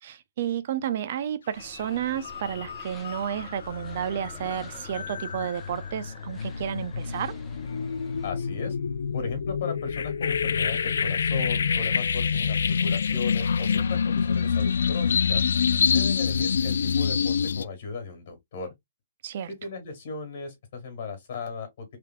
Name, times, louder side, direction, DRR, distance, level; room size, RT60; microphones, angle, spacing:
voice 1, 0.0-7.3 19.2-19.5, right 9 dB, 50° right, 0.5 m, -31 dB
sound 1, 1.5-8.3, left 3 dB, 10° left, 0.8 m, -49 dB
sound 2, 1.6-1.8 2.2-17.6, left 6 dB, 80° left, 0.3 m, -27 dB
voice 2, 8.2-8.8 9.1-15.4 15.9-18.7 19.5-22.0, left 4 dB, 55° left, 1.8 m, -36 dB
3.4 x 2.9 x 2.2 m
hypercardioid pair, 150°, 0 cm